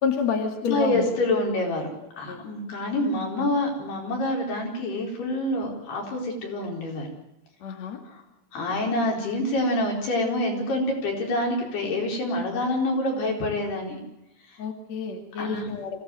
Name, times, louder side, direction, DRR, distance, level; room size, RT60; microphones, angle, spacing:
voice 1, 0.0-1.0 2.3-2.4 7.6-8.0 14.6-16.0, left 6 dB, 50° left, 4 dB, 3.4 m, -28 dB
voice 2, 0.6-1.9 2.2-7.1 8.1-8.2 8.5-14.0 15.4-15.7, left 1 dB, 85° left, 1 dB, 6.6 m, -27 dB
25.5 x 17.0 x 8.0 m, 0.86 s
omnidirectional pair, 4.5 m